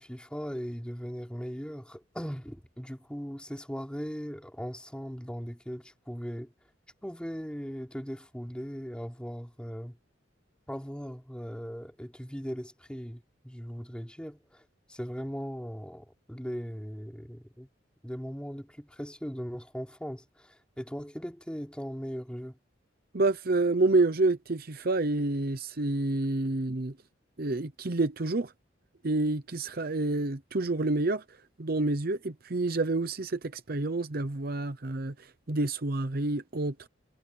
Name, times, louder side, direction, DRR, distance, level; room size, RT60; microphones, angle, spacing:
voice 1, 0.0-6.5 7.0-10.0 10.7-17.7 18.0-22.6, equal, 5° left, 4.8 m, -39 dB
voice 2, 23.1-27.0 27.4-28.5 29.0-36.9, right 2 dB, 50° right, 0.8 m, -28 dB
head